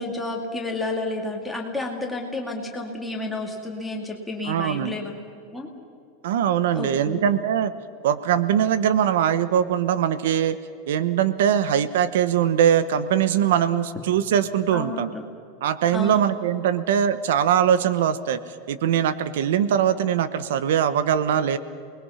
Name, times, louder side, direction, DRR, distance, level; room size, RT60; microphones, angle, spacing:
voice 1, 0.0-5.1 5.5-5.7 6.7-7.2 14.7-15.2 15.9-16.2, left 2 dB, 5° left, -1 dB, 2.4 m, -31 dB
voice 2, 4.4-4.9 6.2-7.7 8.0-10.6 10.9-15.1 15.6-18.4 18.7-21.6, right 9 dB, 75° right, 14 dB, 1.0 m, -21 dB
28.5 x 21.0 x 5.7 m, 2.5 s
supercardioid pair, 175°, 0 cm